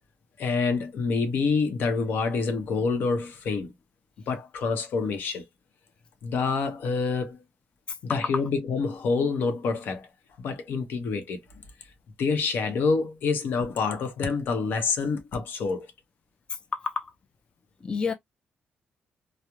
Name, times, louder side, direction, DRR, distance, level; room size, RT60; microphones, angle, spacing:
voice 1, 0.4-3.7 4.3-5.4 6.2-7.4 8.0-10.1 10.4-11.4 12.2-15.9, left 4 dB, 70° left, 0.7 m, -27 dB
voice 2, 16.5-17.1 17.8-18.1, left 5 dB, 25° left, 0.3 m, -30 dB
2.9 x 2.0 x 2.3 m
cardioid pair, 145°, 3 cm